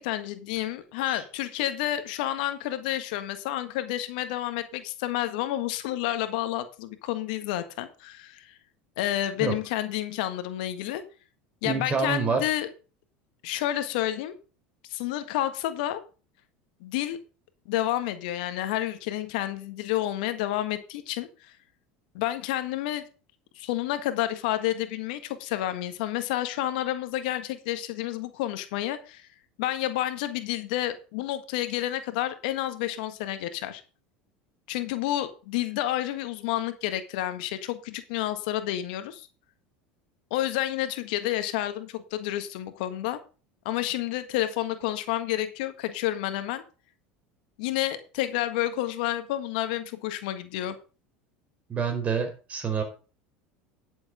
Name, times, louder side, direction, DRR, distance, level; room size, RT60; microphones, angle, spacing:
voice 1, 0.0-8.5 9.0-11.0 11.6-12.7 13.4-14.3 14.9-16.0 16.8-17.2 17.7-21.5 22.1-23.0 23.6-29.3 29.6-33.8 34.7-39.3 40.3-43.2 43.6-46.6 47.6-50.7, left 13 dB, 75° left, 10 dB, 1.5 m, -30 dB
voice 2, 11.6-12.4 51.7-52.8, right 5 dB, 30° right, 6 dB, 4.5 m, -27 dB
11.0 x 7.2 x 4.9 m, 0.35 s
supercardioid pair, 95°, 5 cm